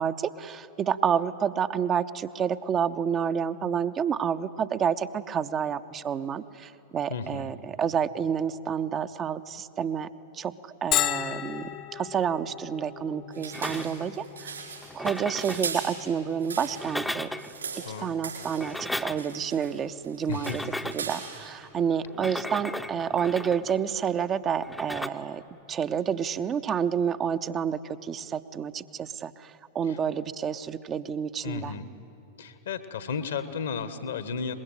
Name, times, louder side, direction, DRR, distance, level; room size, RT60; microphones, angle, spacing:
voice 1, 0.0-10.1 10.3-14.5 14.9-17.3 18.0-20.6 20.9-25.4 25.7-31.7, right 7 dB, 25° right, 10 dB, 0.7 m, -29 dB
voice 2, 7.1-7.5 17.8-18.1 20.3-20.6 29.9-30.0 31.4-31.9 32.4-34.5, left 6 dB, 65° left, 12 dB, 1.4 m, -33 dB
Bell, 10.9-26.4, left 13 dB, 35° left, 0.9 m, -39 dB
sound 1, 13.3-17.0 17.3-18.8 19.2-19.8 20.0-21.5, right 5 dB, 75° right, 4.3 m, -39 dB
sound 2, 13.5-14.2 14.8-15.7 16.6-17.6 18.4-19.4 20.3-21.1 22.1-23.8 24.6-25.1, left 1 dB, 5° left, 0.8 m, -35 dB
23.5 x 21.0 x 9.1 m, 3.0 s
figure-of-eight pair, 90°, 0 cm